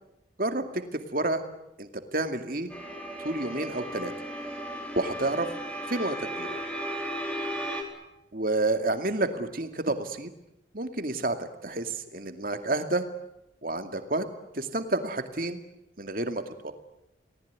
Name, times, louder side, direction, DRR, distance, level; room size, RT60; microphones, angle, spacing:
voice 1, 0.9-1.4 1.8-2.7 3.2-4.1 5.0-5.5 5.9-6.6 8.3-10.3 10.7-13.0 13.6-14.3 14.5-15.6 16.0-16.7, right 2 dB, 50° right, 7 dB, 2.4 m, -29 dB
sound 1, 2.7-7.8, right 1 dB, 5° left, 4.3 m, -35 dB
29.5 x 19.5 x 9.7 m, 0.86 s
head